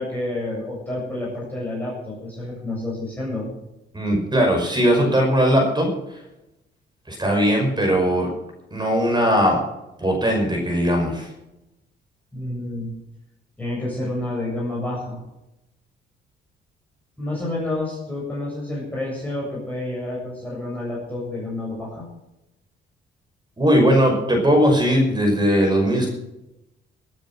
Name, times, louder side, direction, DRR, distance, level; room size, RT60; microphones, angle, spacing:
voice 1, 0.0-3.5 12.3-12.9 13.6-15.2 17.2-22.1, left 1 dB, 5° left, -5 dB, 7.3 m, -29 dB
voice 2, 3.9-5.9 7.1-8.3 8.7-9.6 10.0-11.3 23.6-26.1, equal, 20° right, 2 dB, 5.7 m, -19 dB
18.0 x 9.6 x 6.0 m, 0.92 s
cardioid pair, 90°, 20 cm